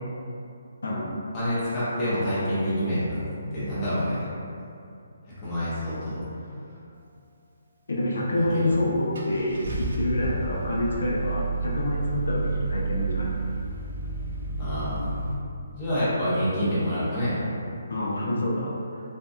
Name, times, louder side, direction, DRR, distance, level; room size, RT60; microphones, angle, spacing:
voice 1, 0.8-1.1 7.9-13.3 17.9-19.0, left 1 dB, 80° left, -4 dB, 0.4 m, -27 dB
voice 2, 1.3-3.3 3.5-4.3 5.4-6.2 8.4-8.7 14.6-15.2 15.8-17.4, equal, 15° left, -12 dB, 0.6 m, -27 dB
Car / Engine starting, 8.4-8.5 9.2-15.3, right 3 dB, 50° right, 0.3 m, -30 dB
2.6 x 2.2 x 2.2 m, 2.5 s
hypercardioid pair, 175°, 0 cm